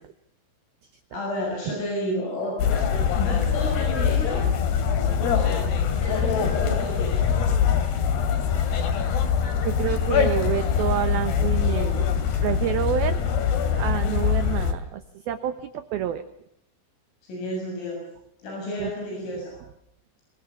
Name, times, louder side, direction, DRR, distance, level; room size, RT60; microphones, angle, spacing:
voice 1, 1.1-4.5 5.3-5.7 6.0-7.3 17.3-18.0 18.4-19.6, left 1 dB, 80° left, -1 dB, 10.0 m, -31 dB
sound 1, 2.6-14.7, left 7 dB, 60° left, 4.2 m, -23 dB
voice 2, 9.6-12.1 12.4-13.2 13.7-16.3 18.8-18.9 19.4-19.5, right 11 dB, 75° right, 10 dB, 2.3 m, -28 dB
26.0 x 21.5 x 7.3 m, 0.76 s
omnidirectional pair, 5.7 m